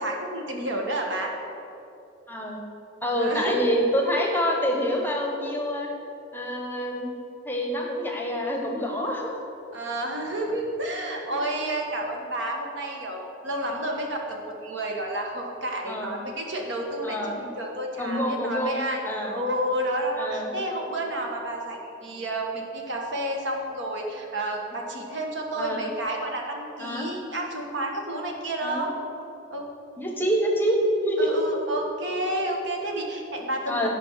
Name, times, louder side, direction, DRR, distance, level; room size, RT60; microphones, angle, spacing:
voice 1, 0.0-1.3 3.2-3.6 9.1-9.3 9.7-19.0 19.3-28.9 29.5-29.7 31.2-33.9, right 1 dB, 65° right, 1 dB, 1.4 m, -30 dB
voice 2, 2.3-2.6 3.0-5.9 6.3-7.1 7.4-9.3 11.3-11.5 15.9-16.2 17.0-17.4 18.0-19.4 20.2-20.5 25.6-25.8 26.8-27.1 28.6-28.9 30.0-31.3 33.7-33.9, equal, 10° left, 1 dB, 0.9 m, -27 dB
10.5 x 5.2 x 6.6 m, 2.8 s
head